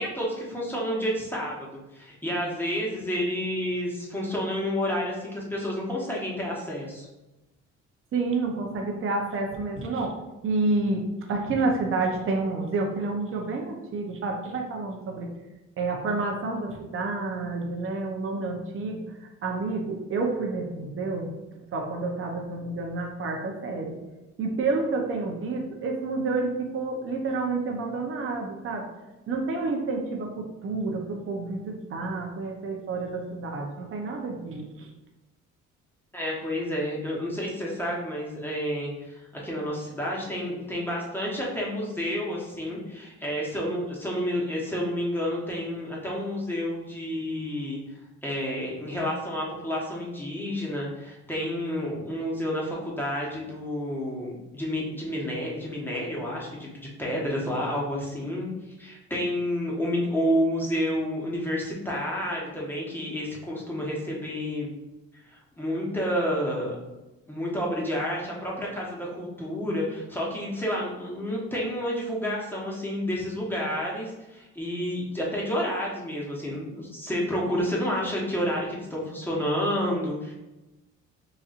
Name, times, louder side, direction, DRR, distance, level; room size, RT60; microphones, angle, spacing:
voice 1, 0.0-7.1 36.1-47.8 48.2-56.7 57.0-58.5 58.8-64.7 65.3-66.7 67.3-80.3, equal, 5° left, -5 dB, 1.1 m, -30 dB
voice 2, 8.1-10.2 10.4-15.3 15.8-21.3 21.7-24.0 24.4-28.9 29.3-34.9, right 3 dB, 45° right, 1 dB, 0.7 m, -29 dB
4.1 x 2.6 x 2.5 m, 1.0 s
cardioid pair, 90°, 30 cm